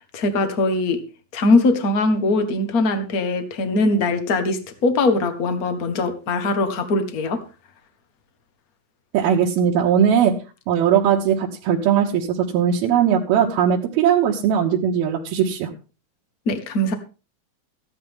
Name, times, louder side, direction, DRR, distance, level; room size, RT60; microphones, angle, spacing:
voice 1, 0.1-1.0 1.3-7.4 16.5-16.9, left 2 dB, 70° left, 8 dB, 0.8 m, -21 dB
voice 2, 9.1-10.4 10.7-15.7, right 8 dB, 80° right, -2 dB, 3.1 m, -19 dB
15.0 x 11.5 x 3.6 m, 0.32 s
omnidirectional pair, 4.4 m